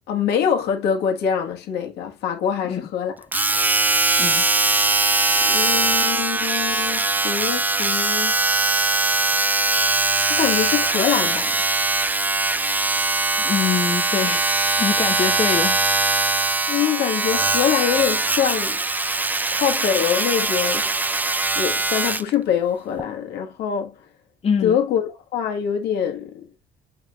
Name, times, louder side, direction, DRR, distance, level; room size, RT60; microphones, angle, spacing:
voice 1, 0.1-3.1 5.3-8.4 10.3-11.6 16.7-18.8 19.5-20.8 21.6-24.0 24.6-26.5, left 8 dB, 80° left, 1.6 m, -24 dB
Domestic sounds home sounds, 3.3-22.3 23.0-23.1, right 2 dB, 10° right, 0.4 m, -21 dB
voice 2, 13.4-14.5 14.8-15.8 24.4-24.8, left 6 dB, 35° left, 1.0 m, -24 dB
6.8 x 5.6 x 2.4 m
cardioid pair, 110°, 17 cm